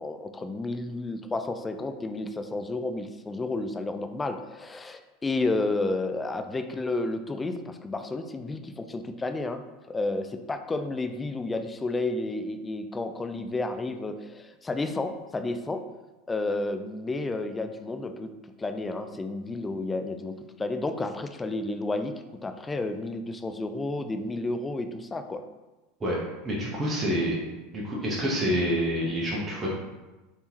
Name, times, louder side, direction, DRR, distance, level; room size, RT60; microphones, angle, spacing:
voice 1, 0.0-15.9 16.3-18.3 18.6-25.4, left 2 dB, 15° left, 8 dB, 0.3 m, -31 dB
voice 2, 26.4-27.4 27.7-29.7, equal, 25° right, -4 dB, 0.9 m, -27 dB
3.5 x 2.9 x 2.8 m, 1.1 s
hypercardioid pair, 90°, 0 cm